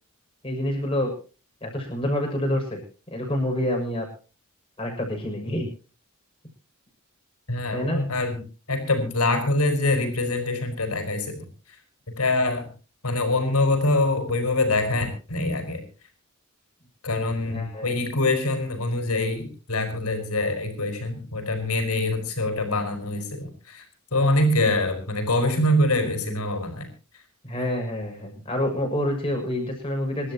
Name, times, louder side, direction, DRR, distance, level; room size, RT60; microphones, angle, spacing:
voice 1, 0.4-1.1 1.6-2.8 3.1-4.1 4.8-5.7 7.7-8.0 17.5-18.0 27.4-30.3, left 1 dB, 25° left, 1 dB, 6.7 m, -27 dB
voice 2, 7.5-8.4 8.7-11.5 12.1-12.7 13.0-15.8 17.0-23.8 24.1-26.9, left 2 dB, 85° left, 6 dB, 5.1 m, -24 dB
27.5 x 12.5 x 2.9 m, 0.35 s
head